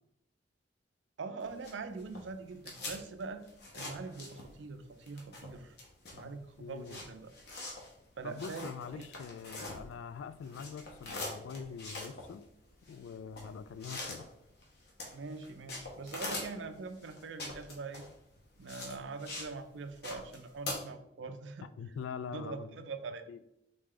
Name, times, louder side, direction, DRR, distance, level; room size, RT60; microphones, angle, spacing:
voice 1, 1.2-3.4 3.7-5.7 6.1-7.3 8.2-9.1 15.1-18.1 18.6-21.7 22.3-23.2, right 4 dB, 75° right, 9 dB, 0.4 m, -43 dB
sound 1, 1.4-4.7 5.0-10.1 10.4-19.5 19.8-20.7, left 2 dB, 60° left, 1.0 m, -43 dB
voice 2, 6.6-7.0 8.2-12.4 12.9-14.3 21.8-22.7 23.3-23.4, left 6 dB, 85° left, 13 dB, 0.3 m, -44 dB
3.8 x 3.2 x 3.7 m, 0.78 s
head